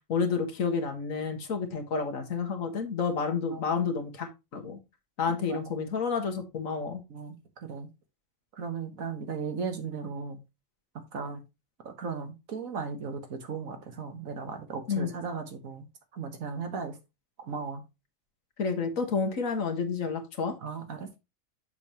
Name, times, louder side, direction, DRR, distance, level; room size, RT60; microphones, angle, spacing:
voice 1, 0.1-4.8 5.2-7.0 14.9-15.1 18.6-20.5, left 5 dB, 80° left, 1.8 m, -30 dB
voice 2, 5.4-5.8 7.1-7.9 8.5-10.4 11.0-11.4 11.8-15.8 16.1-17.0 17.4-17.8 20.6-21.2, right 5 dB, 85° right, 1.8 m, -37 dB
6.9 x 6.8 x 2.9 m
omnidirectional pair, 1.4 m